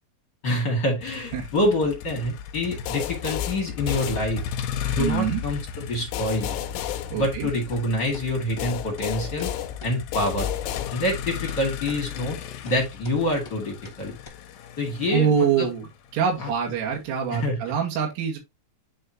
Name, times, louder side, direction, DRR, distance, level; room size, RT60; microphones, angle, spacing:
voice 1, 0.4-4.4 4.9-6.6 7.1-9.5 9.8-10.5 10.9-12.4 12.6-14.2 14.8-15.7 16.4-16.5 17.3-17.6, left 1 dB, 45° left, 1.4 m, -26 dB
Motor vehicle (road), 1.0-17.1, left 8 dB, 75° left, 2.3 m, -36 dB
sound 1, 2.9-4.8 6.1-7.9 8.6-11.4, left 12 dB, 90° left, 3.2 m, -32 dB
voice 2, 5.0-5.4 7.1-7.5 15.1-15.8 16.1-18.4, right 7 dB, 80° right, 4.6 m, -24 dB
sound 2, 7.7-7.8 8.1-8.3 8.6-8.7 9.0-9.1 9.4-9.5 9.8-9.9 10.3-10.4 10.7-10.8 11.1-11.2 11.5-11.6 11.9-12.0 12.3-12.4 12.7-12.8 13.0-13.2 13.4-13.6 13.8-14.0 14.2-14.3, left 2 dB, 30° left, 1.0 m, -44 dB
10.5 x 3.9 x 2.9 m
omnidirectional pair, 5.6 m